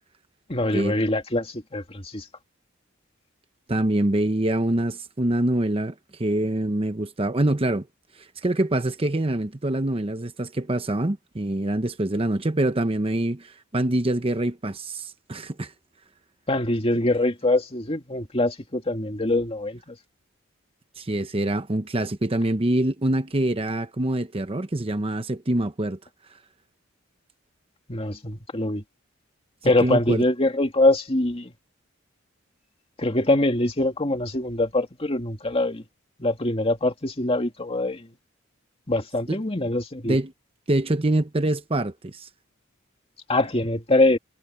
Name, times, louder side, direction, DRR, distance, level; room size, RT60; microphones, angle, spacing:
voice 1, 0.5-2.2 16.5-20.0 27.9-28.8 29.6-31.5 33.0-35.8 36.2-38.1 38.9-40.2 43.3-44.2, left 2 dB, 30° left, 2.3 m, -23 dB
voice 2, 3.7-7.9 8.2-15.7 21.0-26.0 29.8-30.2 39.3-39.4 40.0-40.3 40.7-42.3, right 1 dB, 30° right, 0.9 m, -25 dB
head